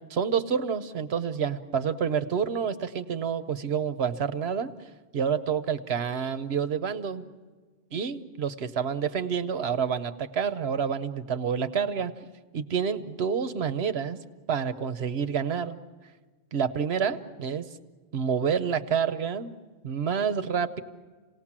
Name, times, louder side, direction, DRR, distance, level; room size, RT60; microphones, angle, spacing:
voice 1, 0.1-4.7 5.1-7.2 7.9-12.1 12.5-14.2 14.5-15.8 16.5-17.6 18.1-19.5 19.8-20.8, right 7 dB, 65° right, 11 dB, 1.1 m, -28 dB
28.0 x 18.5 x 7.4 m, 1.4 s
omnidirectional pair, 1.2 m